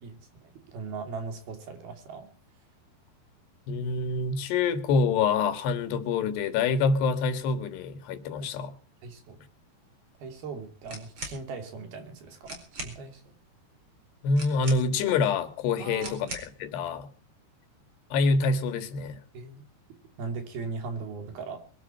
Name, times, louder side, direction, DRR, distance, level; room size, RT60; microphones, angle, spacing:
voice 1, 0.0-2.3 8.4-8.5 9.0-9.4 10.2-13.3 15.8-16.4 19.3-19.6 20.2-21.6, right 4 dB, 65° right, 6 dB, 4.7 m, -39 dB
voice 2, 3.7-8.7 14.2-17.1 18.1-19.2, left 4 dB, 80° left, 11 dB, 3.6 m, -26 dB
sound 1, 10.8-11.4 12.1-12.2 12.4-13.0 14.3-15.1 16.0-16.6, right 2 dB, 30° right, 5.0 m, -40 dB
23.5 x 12.0 x 4.4 m, 0.41 s
omnidirectional pair, 4.8 m